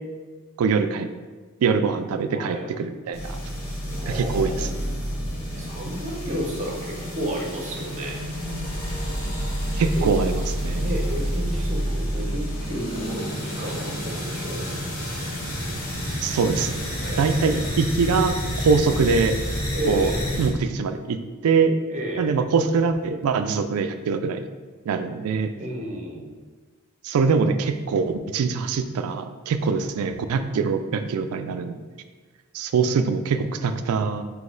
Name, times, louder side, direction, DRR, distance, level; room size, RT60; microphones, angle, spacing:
voice 1, 0.6-1.1 1.6-3.4 4.1-4.7 9.8-10.8 16.2-16.7 17.2-18.3 18.6-19.4 19.9-20.1 20.4-21.2 21.4-21.8 22.2-24.5 24.9-25.5 27.0-31.8 32.5-34.2, right 5 dB, 85° right, 9 dB, 0.3 m, -23 dB
voice 2, 2.3-2.7 3.9-4.7 5.5-8.2 9.8-10.1 10.8-14.7 16.9-17.7 19.7-20.2 21.9-22.4 25.6-26.3, right 1 dB, 35° right, 0 dB, 0.7 m, -32 dB
sound 1, 3.1-20.5, equal, 85° left, 1.2 m, -29 dB
3.9 x 2.8 x 3.8 m, 1.4 s
head